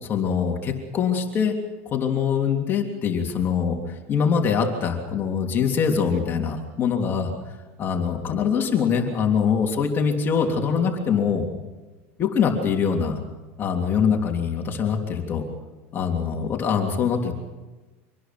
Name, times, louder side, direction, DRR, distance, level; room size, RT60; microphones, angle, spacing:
voice 1, 0.1-1.5 1.9-7.3 7.8-11.5 12.2-13.2 13.6-15.5 15.9-17.3, left 6 dB, 30° left, 2 dB, 3.2 m, -23 dB
26.0 x 20.0 x 6.1 m, 1.2 s
supercardioid pair, 135°, 7 cm